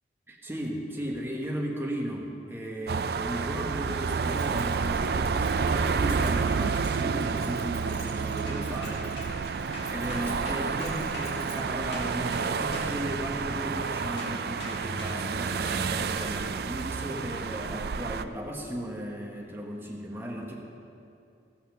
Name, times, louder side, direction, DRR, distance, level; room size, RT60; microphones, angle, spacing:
voice 1, 0.3-20.5, equal, 15° right, -1 dB, 1.1 m, -36 dB
sound 1, 2.9-18.2, right 5 dB, 60° right, 0.4 m, -30 dB
Keys jangling, 3.9-11.9, equal, 20° left, 3.3 m, -50 dB
sound 2, 8.4-13.7 14.2-16.7 17.3-17.6, left 1 dB, 80° left, 1.9 m, -43 dB
16.0 x 5.6 x 6.5 m, 2.5 s
head